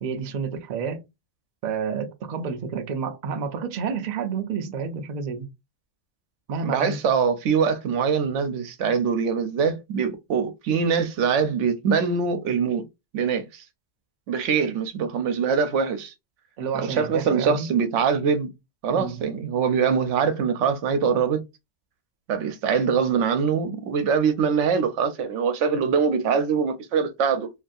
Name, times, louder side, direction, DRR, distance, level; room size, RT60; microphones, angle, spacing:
voice 1, 0.0-1.0 1.6-5.5 6.5-7.0 16.6-17.7 18.9-19.2, right 6 dB, 60° right, 0.4 m, -29 dB
voice 2, 6.6-12.8 13.1-13.6 14.3-16.1 16.8-18.5 18.8-21.4 22.3-27.5, right 6 dB, 75° right, 0.9 m, -23 dB
2.8 x 2.5 x 2.3 m
omnidirectional pair, 1.3 m